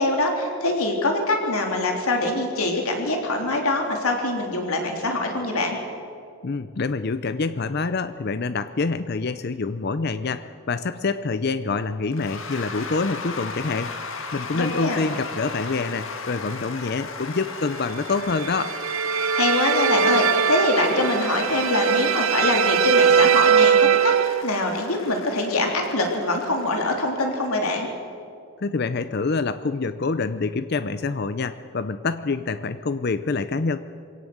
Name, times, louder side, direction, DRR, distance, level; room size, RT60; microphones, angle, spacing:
voice 1, 0.0-5.8 14.5-15.0 19.3-24.1 24.4-27.9, left 2 dB, 85° left, 2 dB, 3.4 m, -24 dB
voice 2, 6.4-18.7 28.6-33.8, left 4 dB, 45° left, 13 dB, 0.5 m, -26 dB
Cheering / Applause / Crowd, 12.1-27.7, left 4 dB, 65° left, 1.8 m, -37 dB
sound 1, 18.2-24.4, right 7 dB, 70° right, 0.7 m, -20 dB
23.0 x 17.5 x 7.9 m, 2.4 s
head